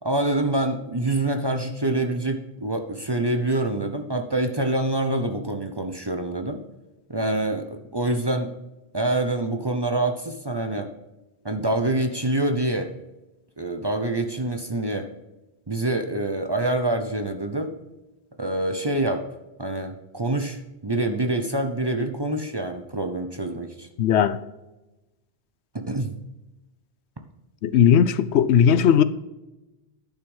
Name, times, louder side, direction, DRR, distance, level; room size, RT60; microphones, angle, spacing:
voice 1, 0.0-6.6 7.1-8.5 8.9-10.9 11.4-12.9 13.6-15.1 15.7-17.7 18.4-19.2 19.6-23.9 25.7-26.1, right 2 dB, 25° right, 0.7 m, -26 dB
voice 2, 24.0-24.4 27.6-29.0, left 8 dB, 80° left, 0.9 m, -17 dB
10.5 x 6.0 x 5.5 m
omnidirectional pair, 1.1 m